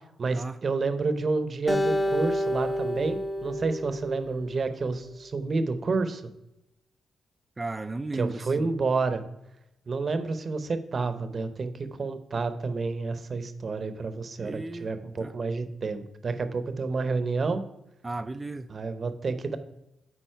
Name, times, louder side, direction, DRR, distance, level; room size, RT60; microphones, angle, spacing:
voice 1, 0.2-6.2 8.1-9.2 9.9-17.6 18.7-19.6, right 4 dB, 50° right, 0.8 m, -29 dB
Acoustic guitar, 1.7-5.0, equal, 30° left, 1.3 m, -29 dB
voice 2, 7.6-8.7 14.4-14.9 15.2-15.4 18.0-18.7, right 2 dB, 25° right, 0.4 m, -35 dB
9.1 x 4.2 x 4.5 m
cardioid pair, 60°, 0 cm